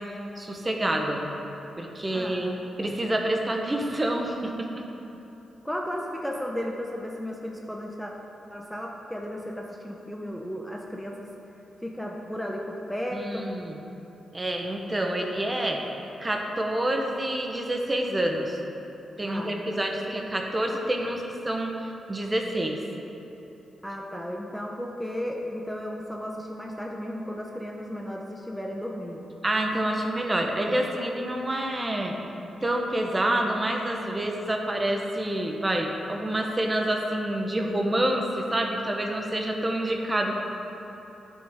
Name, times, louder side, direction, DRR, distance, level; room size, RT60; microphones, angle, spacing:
voice 1, 0.4-1.2 1.8-2.5 2.8-4.7 13.1-13.8 14.3-15.8 16.2-18.6 19.2-22.8 29.4-32.2 32.6-40.4, right 1 dB, 25° right, 2 dB, 1.0 m, -27 dB
voice 2, 2.1-2.6 5.6-8.1 8.5-11.3 11.8-13.5 19.2-19.8 23.8-29.3, equal, 5° left, -1 dB, 0.7 m, -34 dB
10.0 x 6.4 x 3.6 m, 3.0 s
cardioid pair, 65°, 0 cm